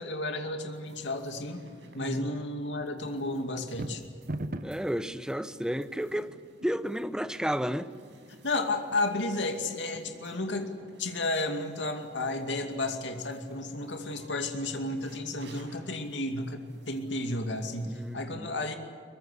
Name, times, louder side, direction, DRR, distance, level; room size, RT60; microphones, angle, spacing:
voice 1, 0.0-1.6 1.9-4.0 8.4-18.8, left 2 dB, 85° left, 2.5 m, -32 dB
sound 1, 0.7-18.1, right 1 dB, 80° right, 5.4 m, -55 dB
voice 2, 2.0-2.3 4.6-6.3 6.6-7.9 17.8-18.5, equal, 5° right, 0.9 m, -32 dB
sound 2, 3.6-4.9, right 1 dB, 50° right, 1.1 m, -35 dB
23.0 x 22.0 x 8.4 m
head